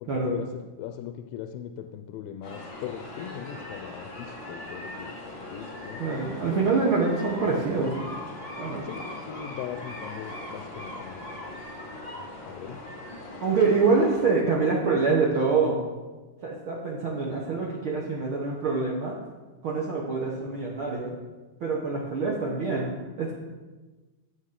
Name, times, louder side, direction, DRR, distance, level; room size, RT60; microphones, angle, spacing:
voice 1, 0.0-5.2 5.5-6.0 8.8-11.4 12.5-12.8, left 10 dB, 85° left, 6 dB, 2.3 m, -39 dB
sound 1, 2.4-14.3, left 1 dB, 40° left, 1.0 m, -40 dB
voice 2, 6.0-8.1 8.6-8.9 13.4-15.8 16.4-19.2 19.6-21.2 21.6-23.3, right 4 dB, 85° right, -3 dB, 1.1 m, -25 dB
13.0 x 7.1 x 3.7 m, 1.2 s
omnidirectional pair, 4.1 m